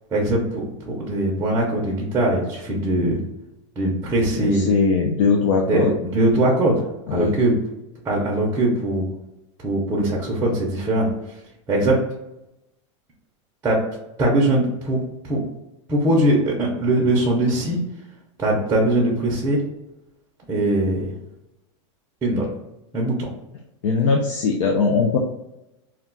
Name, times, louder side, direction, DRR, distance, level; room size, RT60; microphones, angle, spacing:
voice 1, 0.1-3.2 3.8-4.6 5.7-6.8 7.1-7.5 8.0-9.0 9.6-11.1 11.7-12.0 13.6-13.8 14.2-15.4 15.9-17.8 18.4-19.6 20.5-21.1 22.2-22.5 22.9-23.3, right 1 dB, 15° right, -2 dB, 0.5 m, -21 dB
voice 2, 4.3-5.9 7.1-7.4 23.8-25.2, left 4 dB, 85° left, 0 dB, 0.5 m, -20 dB
2.3 x 2.2 x 3.7 m, 0.91 s
supercardioid pair, 155°, 16 cm